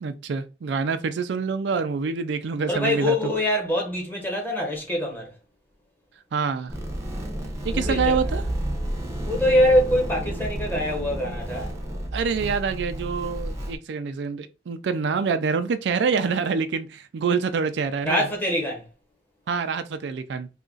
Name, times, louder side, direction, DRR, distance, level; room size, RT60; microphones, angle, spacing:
voice 1, 0.0-3.3 6.3-6.7 7.6-8.4 12.1-18.2 19.5-20.5, right 5 dB, 70° right, 0.4 m, -26 dB
voice 2, 2.7-5.3 7.7-8.3 9.2-11.7 18.0-18.8, left 1 dB, 10° left, 1.1 m, -24 dB
sound 1, 6.7-13.8, right 1 dB, 15° right, 0.7 m, -31 dB
2.8 x 2.4 x 3.8 m
head